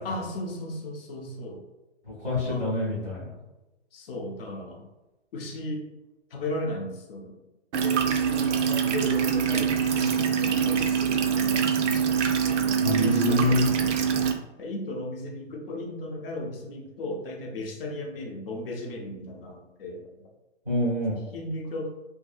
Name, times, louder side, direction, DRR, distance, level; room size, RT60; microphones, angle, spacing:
voice 1, 0.0-1.6 2.5-2.8 3.9-4.8 5.3-5.9 6.3-7.3 7.8-12.3 12.8-14.0 14.6-20.1 21.3-21.9, left 1 dB, 50° left, 1 dB, 0.6 m, -36 dB
voice 2, 2.1-3.3 12.8-13.6 20.6-21.2, left 1 dB, 5° right, -13 dB, 0.4 m, -26 dB
sound 1, 7.7-14.3, right 7 dB, 80° right, 0.5 m, -24 dB
2.6 x 2.6 x 2.4 m, 1.0 s
hypercardioid pair, 160°, 35 cm